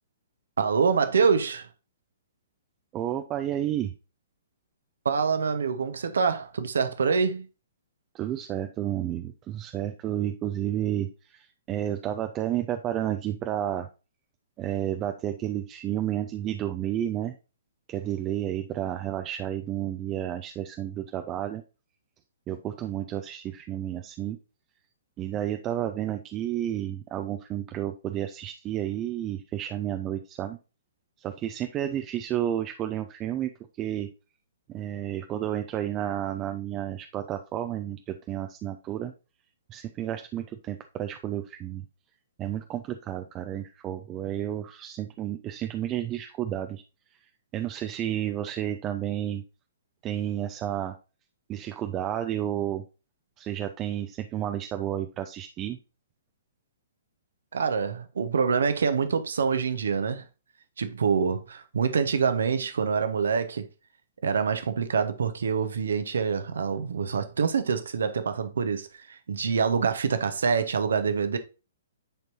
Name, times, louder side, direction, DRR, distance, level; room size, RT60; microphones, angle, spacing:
voice 1, 0.6-1.7 5.0-7.5 57.5-60.2 60.8-63.7 64.2-71.4, right 6 dB, 70° right, 1.0 m, -26 dB
voice 2, 2.9-3.9 8.1-13.9 14.6-17.4 17.9-21.6 22.5-24.4 25.2-30.6 31.2-33.5 33.8-34.1 34.7-39.1 39.7-41.8 42.4-46.8 47.1-49.4 50.0-51.0 51.5-52.8 53.4-55.8, right 11 dB, 25° right, 0.6 m, -31 dB
10.0 x 4.5 x 2.6 m
figure-of-eight pair, 120°, 0 cm